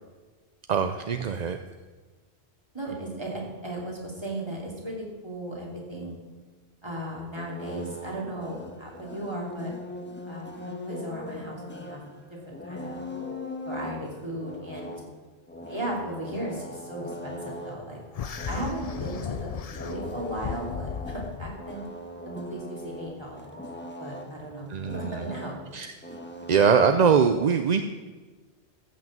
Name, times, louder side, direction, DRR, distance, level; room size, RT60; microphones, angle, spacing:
voice 1, 0.7-1.6 24.7-25.2 25.7-25.9 26.5-27.8, right 6 dB, 50° right, 8 dB, 0.6 m, -22 dB
voice 2, 2.7-6.2 6.8-9.7 10.3-12.0 12.5-13.1 13.6-14.9 15.7-21.8 22.2-23.6 24.0-24.7 24.9-25.6, right 1 dB, 25° right, -3 dB, 3.0 m, -36 dB
sound 1, 7.3-24.4 24.8-27.1, left 1 dB, 10° left, 1.2 m, -40 dB
sound 2, 18.1-21.6, left 7 dB, 50° left, 0.4 m, -35 dB
14.0 x 6.2 x 7.5 m, 1.3 s
omnidirectional pair, 1.1 m